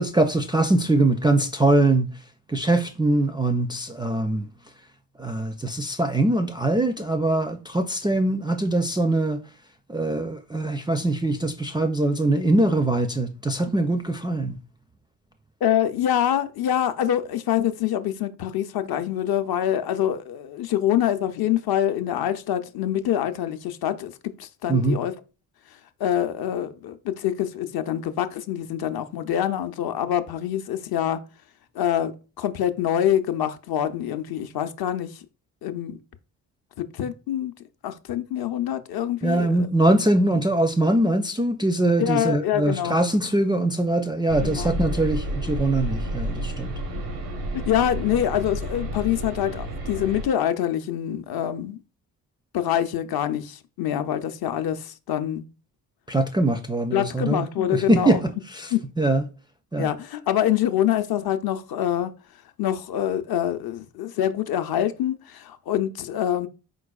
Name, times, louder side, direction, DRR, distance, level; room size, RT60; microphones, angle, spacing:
voice 1, 0.0-2.1 2.5-4.5 5.2-9.4 9.9-14.6 24.7-25.0 39.2-46.7 56.1-58.7 59.0-59.2 59.7-59.9, right 2 dB, 10° right, 0.4 m, -22 dB
voice 2, 15.6-24.1 24.4-25.1 26.0-31.2 31.7-35.1 35.6-36.0 36.9-37.5 37.8-39.7 42.0-43.0 44.4-44.9 47.0-47.1 47.7-51.8 52.5-55.4 56.9-58.2 58.7-58.8 59.8-62.1 62.6-66.5, left 11 dB, 50° left, 0.6 m, -25 dB
sound 1, 44.3-50.2, equal, 90° right, 0.9 m, -30 dB
4.5 x 3.8 x 2.3 m
hypercardioid pair, 45°, 47 cm